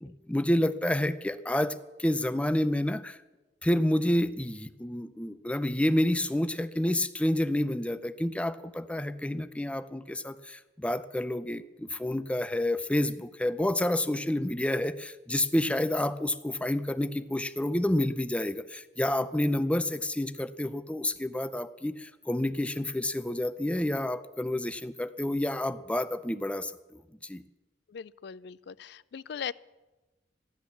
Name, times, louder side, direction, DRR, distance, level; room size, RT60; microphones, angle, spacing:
voice 1, 0.0-3.2 3.6-26.7 27.2-27.4, left 1 dB, 5° left, 14 dB, 0.5 m, -29 dB
voice 2, 27.9-29.5, left 7 dB, 65° left, 21 dB, 0.4 m, -39 dB
14.5 x 10.5 x 7.1 m, 1.1 s
head